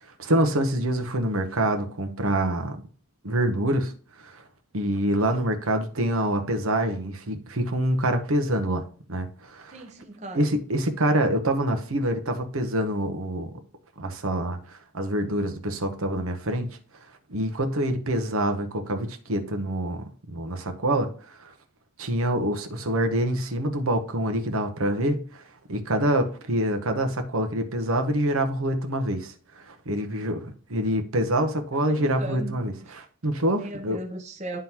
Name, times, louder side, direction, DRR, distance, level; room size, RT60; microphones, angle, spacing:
voice 1, 0.2-2.8 3.2-3.9 4.2-4.4 4.7-8.8 9.1-9.8 10.3-13.5 14.0-16.7 17.3-21.5 22.0-34.0, right 1 dB, 85° right, 1.0 m, -26 dB
voice 2, 9.7-10.4 32.0-32.6 33.5-34.6, right 1 dB, 35° right, 0.8 m, -37 dB
11.0 x 3.8 x 2.9 m
head